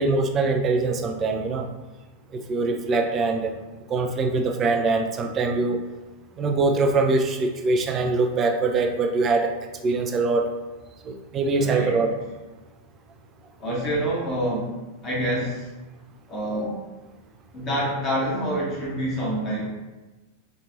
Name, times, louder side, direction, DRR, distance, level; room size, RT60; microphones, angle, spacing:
voice 1, 0.0-1.7 2.3-3.5 3.9-5.8 6.4-9.5 9.8-10.5 11.1-12.1, right 3 dB, 25° right, 4 dB, 0.3 m, -23 dB
voice 2, 11.6-11.9 13.6-14.7 15.0-15.7 16.3-16.8 17.5-19.6, equal, 30° left, -5 dB, 1.1 m, -26 dB
3.0 x 2.5 x 2.5 m, 1.2 s
figure-of-eight pair, 90°, 0 cm